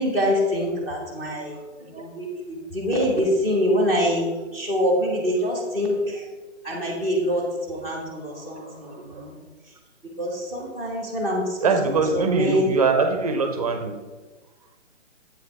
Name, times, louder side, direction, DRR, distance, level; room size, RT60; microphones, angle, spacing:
voice 1, 0.0-1.6 1.8-6.2 6.6-9.3 10.2-12.7, equal, 10° left, -4 dB, 0.6 m, -25 dB
voice 2, 11.6-13.9, right 4 dB, 30° right, 5 dB, 0.6 m, -22 dB
8.0 x 5.0 x 3.3 m, 1.3 s
hypercardioid pair, 155°, 37 cm